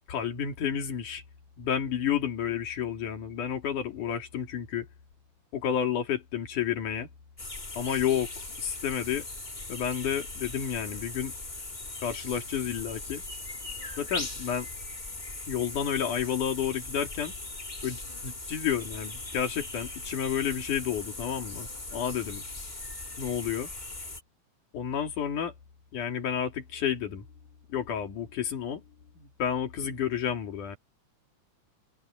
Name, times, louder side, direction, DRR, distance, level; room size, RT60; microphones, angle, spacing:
voice 1, 0.1-1.2 1.6-4.9 5.5-7.1 7.8-8.3 8.6-9.3 9.7-11.3 12.0-13.2 14.0-14.7 15.5-17.3 17.8-22.4 23.2-23.7 24.7-25.5 25.9-27.2 27.7-28.8 29.2-30.8, left 8 dB, 75° left, 4.1 m, -31 dB
sound 1, 7.4-24.2, left 2 dB, 20° left, 1.6 m, -39 dB
omnidirectional pair, 3.6 m